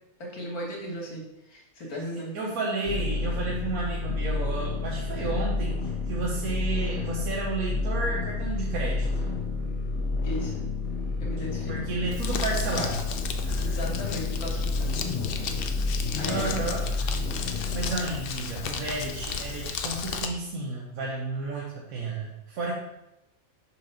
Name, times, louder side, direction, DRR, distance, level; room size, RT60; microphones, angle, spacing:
voice 1, 0.2-2.4 10.2-10.7 11.2-12.2 13.6-15.5 16.2-16.7, equal, 85° left, -2 dB, 1.9 m, -37 dB
voice 2, 2.3-9.1 11.7-13.0 13.4-13.8 16.3-17.1 17.5-22.7, right 3 dB, 75° right, -4 dB, 1.4 m, -32 dB
sound 1, 2.9-17.9, left 3 dB, 25° left, 1.2 m, -30 dB
Crumpling crinkling, 12.1-20.3, left 6 dB, 65° left, 0.5 m, -34 dB
5.7 x 3.0 x 5.5 m, 0.87 s
omnidirectional pair, 1.5 m